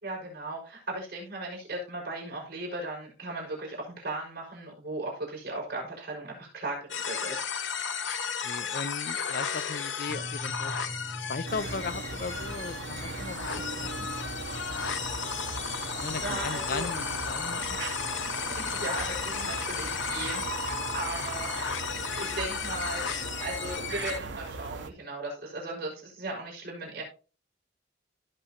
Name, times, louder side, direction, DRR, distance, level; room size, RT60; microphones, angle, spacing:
voice 1, 0.0-7.4 16.2-16.9 18.6-21.8 22.1-23.1 23.4-27.0, right 2 dB, 50° right, 5.6 m, -37 dB
sound 1, 6.9-24.2, left 6 dB, 90° left, 0.9 m, -34 dB
voice 2, 8.4-10.7 11.3-13.9 16.0-17.6, left 4 dB, 50° left, 0.5 m, -37 dB
sound 2, 10.1-22.4, equal, 5° left, 0.7 m, -46 dB
sound 3, 11.5-24.9, right 4 dB, 80° right, 0.8 m, -38 dB
16.5 x 6.1 x 2.9 m
head